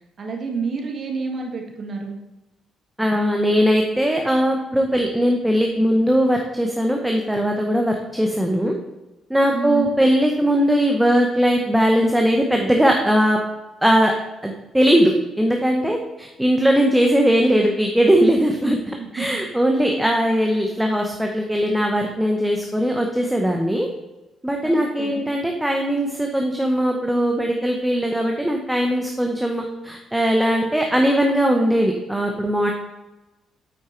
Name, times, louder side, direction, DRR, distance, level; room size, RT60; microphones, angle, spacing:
voice 1, 0.2-2.2 9.5-9.9 17.0-17.3 19.0-19.2 24.6-25.2, right 5 dB, 50° right, 2 dB, 1.7 m, -29 dB
voice 2, 3.0-8.7 9.3-13.4 13.8-14.1 14.4-23.9 24.4-32.7, equal, 5° right, 2 dB, 0.9 m, -19 dB
8.7 x 4.6 x 4.4 m, 1.0 s
cardioid pair, 90°, 0 cm